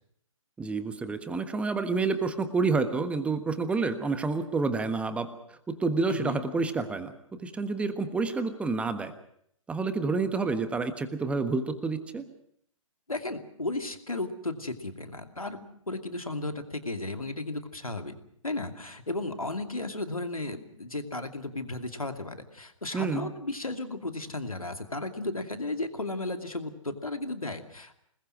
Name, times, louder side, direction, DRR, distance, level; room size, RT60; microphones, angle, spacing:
voice 1, 0.6-5.3 5.7-7.1 7.4-9.1 9.7-12.2 22.9-23.3, right 4 dB, 5° right, 10 dB, 1.4 m, -29 dB
voice 2, 6.1-6.4 13.1-18.1 18.4-28.0, left 2 dB, 90° left, 6 dB, 2.5 m, -34 dB
26.0 x 20.5 x 6.1 m, 0.70 s
figure-of-eight pair, 130°, 18 cm